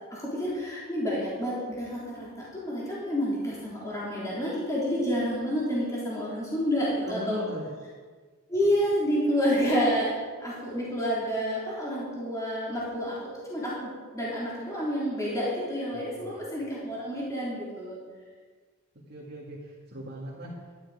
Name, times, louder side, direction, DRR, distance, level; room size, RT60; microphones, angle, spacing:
voice 1, 0.1-7.4 8.5-10.1 10.4-13.2 13.5-18.0, equal, 15° left, -7 dB, 3.5 m, -29 dB
voice 2, 7.0-7.7 15.9-16.3 18.9-20.8, right 1 dB, 50° right, -5 dB, 2.1 m, -39 dB
12.0 x 12.0 x 4.9 m, 1.5 s
head